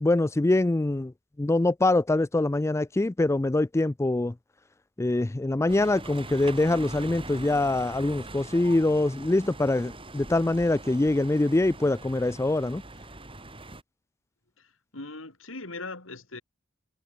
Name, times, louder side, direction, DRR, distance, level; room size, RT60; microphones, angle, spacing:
voice 1, 0.0-1.1 1.4-4.3 5.0-12.8, left 2 dB, 15° left, 0.4 m, -24 dB
sound 1, 5.7-13.8, right 2 dB, 25° right, 7.5 m, -42 dB
voice 2, 14.6-16.4, left 3 dB, 70° left, 3.9 m, -40 dB
head